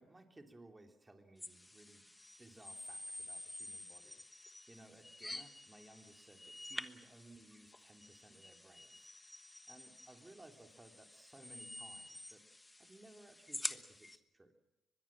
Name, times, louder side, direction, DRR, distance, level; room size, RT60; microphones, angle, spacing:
voice 1, 0.0-2.1 2.4-4.2 4.7-9.1 9.7-12.4 12.8-14.5, right 2 dB, 15° right, 4 dB, 3.1 m, -60 dB
sound 1, 1.4-14.2, left 2 dB, 15° left, 1.2 m, -49 dB
23.5 x 21.0 x 7.5 m, 0.97 s
cardioid pair, 90°, 0 cm